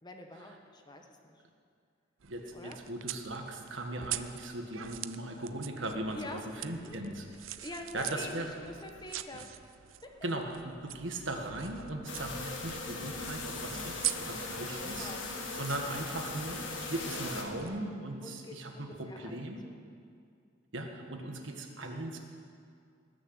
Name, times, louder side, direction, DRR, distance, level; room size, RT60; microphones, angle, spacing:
voice 1, 0.0-1.3 2.5-2.8 6.1-7.0 7.6-9.5 10.0-10.1 14.8-15.3 18.0-19.8 21.2-21.5, left 1 dB, 20° left, 3 dB, 1.3 m, -46 dB
voice 2, 2.2-7.3 7.6-7.7 7.9-8.6 9.3-9.4 10.2-19.6 20.7-22.2, right 1 dB, 70° right, 3 dB, 1.7 m, -38 dB
sound 1, 2.2-17.8, right 13 dB, 90° right, 0.5 m, -44 dB
sound 2, 12.1-17.4, left 3 dB, 70° left, 1.9 m, -39 dB
19.5 x 6.6 x 8.1 m, 2.3 s
head